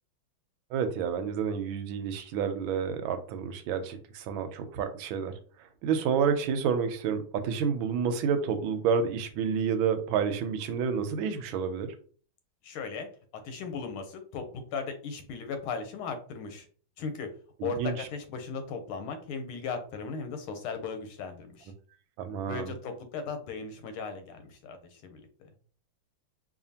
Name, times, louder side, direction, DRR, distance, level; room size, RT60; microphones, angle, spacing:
voice 1, 0.7-5.3 5.6-11.9 17.8-17.9 22.2-22.7, right 6 dB, 80° right, 9 dB, 1.3 m, -29 dB
voice 2, 12.6-13.1 13.4-16.7 17.0-17.3 17.6-21.7 22.5-25.5, left 5 dB, 85° left, 7 dB, 1.6 m, -37 dB
4.9 x 2.5 x 2.8 m, 0.43 s
omnidirectional pair, 2.3 m